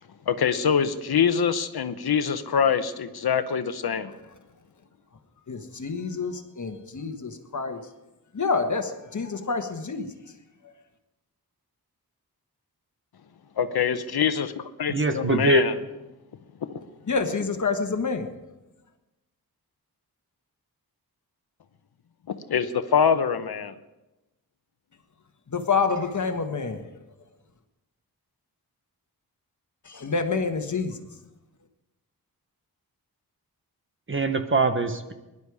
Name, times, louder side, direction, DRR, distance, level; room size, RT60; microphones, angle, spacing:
voice 1, 0.3-4.1 13.6-15.7 22.3-23.8, left 7 dB, 80° left, 10 dB, 0.9 m, -24 dB
voice 2, 5.5-7.8 8.3-10.1 17.1-18.3 25.5-26.9 29.8-31.1, left 4 dB, 50° left, 6 dB, 1.5 m, -28 dB
voice 3, 14.9-15.7 34.1-35.1, right 2 dB, 30° right, 8 dB, 1.2 m, -23 dB
21.5 x 11.0 x 4.9 m, 1.0 s
wide cardioid pair, 105°, 37 cm